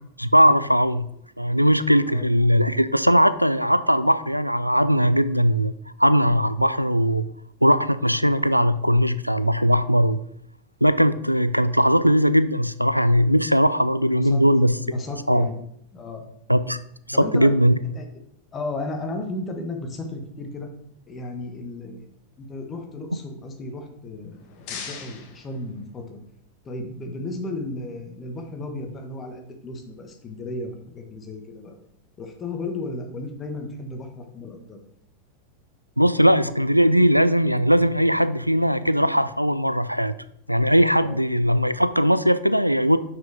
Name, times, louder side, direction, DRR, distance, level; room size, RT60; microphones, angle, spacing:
voice 1, 0.2-1.1 1.4-5.7 6.0-7.2 7.6-10.2 10.8-14.8 15.3-15.5 16.5-16.8 17.1-17.7 36.0-40.1 40.5-43.0, equal, 90° right, 14 dB, 0.3 m, -19 dB
voice 2, 14.1-14.4 14.8-15.5 15.9-16.3 17.1-17.5 17.9-18.1 18.5-20.7 21.1-22.1 22.4-26.2 26.6-31.7 32.2-34.8 41.0-41.2, left 2 dB, 25° left, 3 dB, 1.5 m, -34 dB
sound 1, 24.1-26.3, left 6 dB, 45° left, 1.3 m, -41 dB
6.0 x 5.5 x 5.1 m, 0.72 s
figure-of-eight pair, 90°, 0 cm